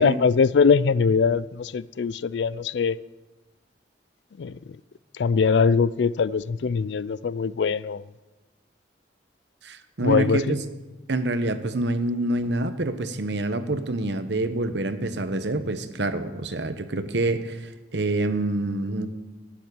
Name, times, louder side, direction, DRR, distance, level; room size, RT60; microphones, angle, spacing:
voice 1, 0.0-3.0 4.4-4.6 5.2-8.0 10.0-10.5, left 5 dB, 70° left, 0.4 m, -22 dB
voice 2, 9.6-10.6 11.1-19.1, right 2 dB, 70° right, 1.0 m, -26 dB
12.0 x 7.2 x 9.7 m
head